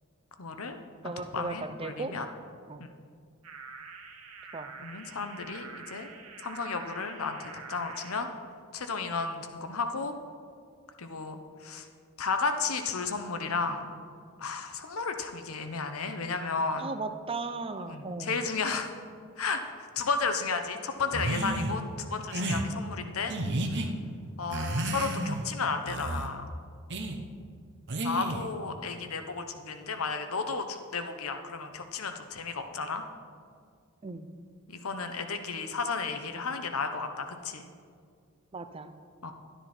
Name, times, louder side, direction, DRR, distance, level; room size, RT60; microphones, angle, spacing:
voice 1, 0.4-0.8 1.0-2.3 2.8-2.9 4.8-6.1 6.4-8.3 8.7-10.1 11.0-11.9 12.2-13.9 14.4-16.9 17.8-18.9 19.4-23.3 23.7-23.9 24.4-26.4 28.0-33.0 34.7-37.7 39.2-39.3, left 4 dB, 75° left, 7 dB, 0.9 m, -33 dB
voice 2, 1.0-2.2 2.7-2.9 4.5-4.7 16.8-18.4 34.0-34.3 38.5-38.9, right 3 dB, 25° right, 9 dB, 0.5 m, -36 dB
sound 1, 3.4-8.2, right 5 dB, 85° right, 1.3 m, -46 dB
sound 2, 21.1-21.8 22.3-22.6 23.3-23.9 24.5-25.5 25.9-26.3 26.9-27.2 27.9-28.5, right 1 dB, 55° right, 0.9 m, -31 dB
12.0 x 10.0 x 4.4 m, 2.2 s
head